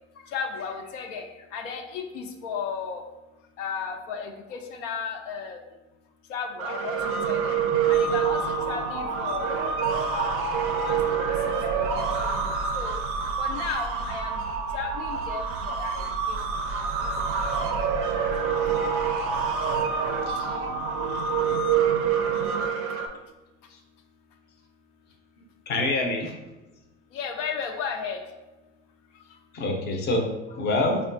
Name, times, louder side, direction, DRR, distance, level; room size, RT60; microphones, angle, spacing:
voice 1, 0.3-3.0 3.6-5.6 6.3-7.0 7.2-7.5 7.9-8.4 8.7-9.6 10.1-10.4 10.8-11.0 11.8-12.1 12.3-12.4 12.7-12.9 13.4-14.4 14.7-16.4 16.8-16.9 17.6-17.9 27.1-28.2, left 6 dB, 80° left, 4 dB, 0.5 m, -34 dB
sound 1, 6.6-23.1, right 6 dB, 40° right, 0.4 m, -26 dB
voice 2, 20.3-20.6 25.7-26.3 29.5-31.0, left 2 dB, 30° left, 2 dB, 0.5 m, -26 dB
3.5 x 2.3 x 2.5 m, 1.0 s
hypercardioid pair, 100°, 37 cm